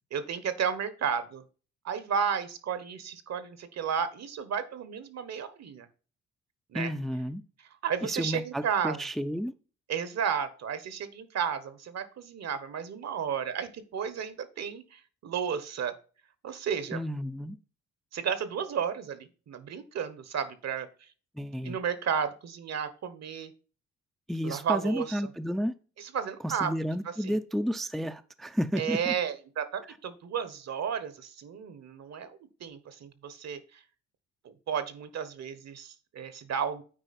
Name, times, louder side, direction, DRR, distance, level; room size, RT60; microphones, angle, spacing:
voice 1, 0.1-1.4 1.8-5.9 6.7-6.9 7.8-9.0 9.9-15.9 16.4-17.0 18.1-20.9 21.6-23.5 24.4-25.2 26.0-26.7 27.0-27.4 28.7-33.8 34.4-36.8, right 7 dB, 60° right, 1.2 m, -33 dB
voice 2, 6.7-7.4 8.0-9.5 16.9-17.6 21.4-21.8 24.3-25.7 26.4-29.1, equal, ahead, 0.4 m, -31 dB
9.0 x 4.6 x 4.2 m
cardioid pair, 90°, 30 cm